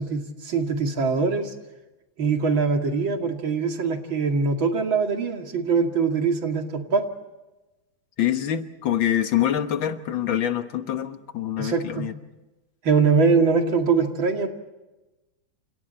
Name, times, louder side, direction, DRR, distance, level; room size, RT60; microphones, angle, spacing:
voice 1, 0.0-1.5 2.2-7.0 11.6-12.1 12.8-14.5, right 5 dB, 80° right, 4 dB, 3.1 m, -23 dB
voice 2, 8.2-12.1, left 11 dB, 75° left, 9 dB, 2.0 m, -25 dB
29.0 x 28.5 x 4.4 m, 1.1 s
omnidirectional pair, 2.1 m